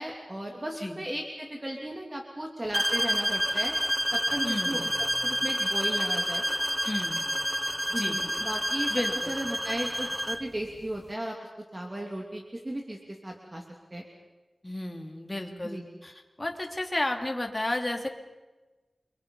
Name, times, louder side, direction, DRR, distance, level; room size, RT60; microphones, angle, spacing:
voice 1, 0.0-3.8 4.1-4.9 5.2-6.4 7.9-13.6 13.9-14.0 15.6-15.8, right 1 dB, 25° right, 1 dB, 2.9 m, -36 dB
sound 1, 2.7-10.5, equal, 5° right, 0.8 m, -29 dB
voice 2, 4.4-4.9 6.8-7.2 7.9-8.2 8.9-9.4 14.6-18.1, left 1 dB, 25° left, 3 dB, 3.1 m, -32 dB
29.5 x 24.0 x 5.6 m, 1.2 s
wide cardioid pair, 75°, 0 cm